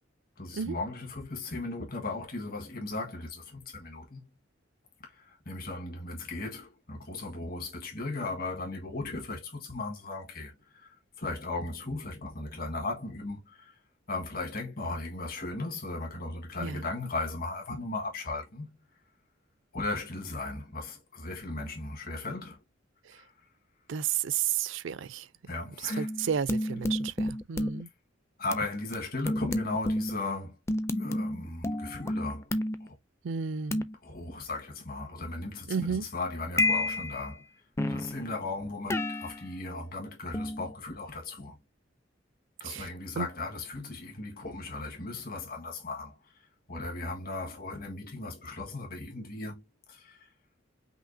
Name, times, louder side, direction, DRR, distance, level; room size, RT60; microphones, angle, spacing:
voice 1, 0.4-4.3 5.0-13.7 14.1-18.7 19.7-22.6 23.1-23.3 25.5-26.1 28.4-30.6 30.9-32.5 32.8-33.0 34.0-37.4 37.9-41.6 42.6-46.2 46.7-49.6 49.9-50.2, left 2 dB, 50° left, 1.5 m, -37 dB
voice 2, 23.9-25.3 25.8-27.9 33.2-33.8 35.7-36.1 42.6-42.9 43.2-43.3, right 8 dB, 70° right, 0.4 m, -32 dB
sound 1, 25.9-27.8 28.5-28.6 28.9-29.0 29.3-30.2 30.7-32.9 33.7-33.9 36.6-37.3 37.8-38.3 38.9-39.5 40.3-40.7, left 1 dB, 15° left, 0.4 m, -30 dB
5.6 x 2.7 x 2.6 m
head